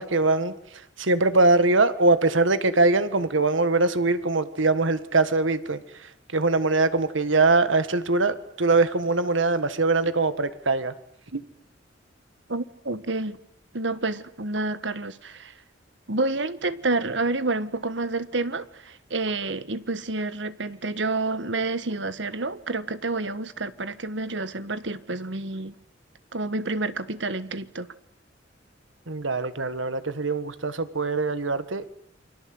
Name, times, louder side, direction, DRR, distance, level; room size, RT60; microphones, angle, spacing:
voice 1, 0.0-10.9 11.3-11.4 29.1-31.9, right 3 dB, 90° right, 1.8 m, -22 dB
voice 2, 12.5-13.4 13.7-15.5 16.1-25.7 26.3-27.9, right 3 dB, 70° right, 1.5 m, -29 dB
29.0 x 25.0 x 7.9 m
head